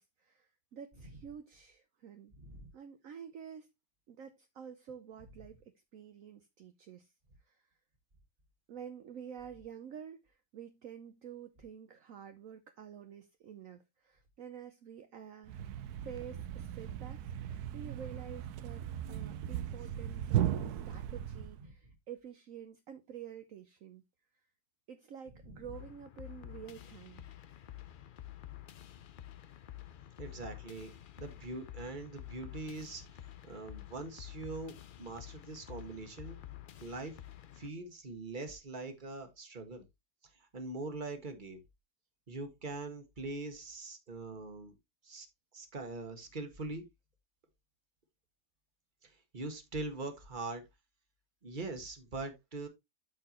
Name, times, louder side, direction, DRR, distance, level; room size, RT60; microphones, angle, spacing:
voice 1, 0.0-2.3 2.7-3.7 4.1-7.1 7.4-7.7 8.7-15.8 16.0-24.0 24.9-27.3, right 8 dB, 65° right, 1.1 m, -49 dB
voice 2, 2.4-2.7 20.9-21.0 30.2-30.9 31.2-33.0 33.4-36.4 36.8-37.2 37.6-39.8 40.4-41.6 42.3-44.7 45.0-45.3 45.5-46.8 49.0-50.6 51.4-52.7, right 2 dB, 35° right, 1.6 m, -42 dB
Thump thud, 15.5-21.7, right 11 dB, 85° right, 1.2 m, -37 dB
sound 1, 25.7-37.7, left 12 dB, 85° left, 0.4 m, -50 dB
12.5 x 4.4 x 3.0 m
omnidirectional pair, 1.6 m